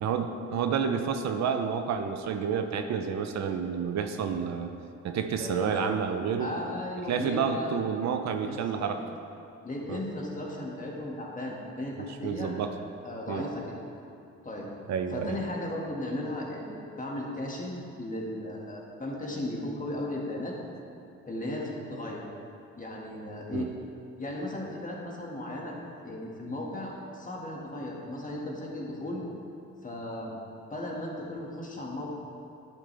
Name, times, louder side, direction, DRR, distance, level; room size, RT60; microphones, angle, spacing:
voice 1, 0.0-4.7 5.0-6.5 7.1-9.0 9.9-10.0 12.0-12.8 13.3-13.5 14.9-15.4 23.5-23.7, right 7 dB, 65° right, 7 dB, 0.6 m, -30 dB
voice 2, 5.4-5.8 6.4-7.7 8.5-9.0 9.6-12.5 13.0-13.8 14.4-14.7 15.1-20.5 21.3-22.2 22.8-23.7 24.2-25.8 26.0-29.3 29.8-30.4 30.7-32.1, left 1 dB, 25° left, -2 dB, 1.9 m, -36 dB
10.5 x 8.6 x 3.4 m, 2.6 s
cardioid pair, 90°, 30 cm